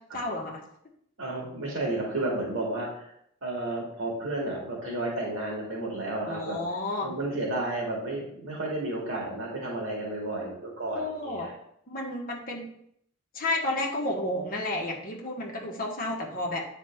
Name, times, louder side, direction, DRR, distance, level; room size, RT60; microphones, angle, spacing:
voice 1, 0.1-0.6 6.2-7.1 10.9-11.5 11.9-12.7 13.3-16.6, left 1 dB, 45° left, -1 dB, 1.5 m, -31 dB
voice 2, 1.2-3.1 3.4-6.6 7.0-11.5, right 2 dB, 80° right, -3 dB, 2.2 m, -32 dB
8.8 x 4.3 x 3.6 m, 0.69 s
head